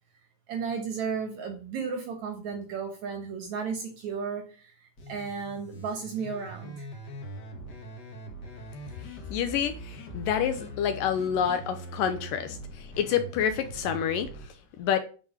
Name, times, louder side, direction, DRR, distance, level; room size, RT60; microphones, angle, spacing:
voice 1, 0.5-6.9, right 5 dB, 60° right, 6 dB, 2.0 m, -34 dB
sound 1, 5.0-14.5, equal, 50° left, 1.2 m, -42 dB
voice 2, 9.1-14.3 14.8-15.0, left 8 dB, 85° left, 9 dB, 1.9 m, -28 dB
11.0 x 4.9 x 7.2 m, 0.38 s
omnidirectional pair, 4.9 m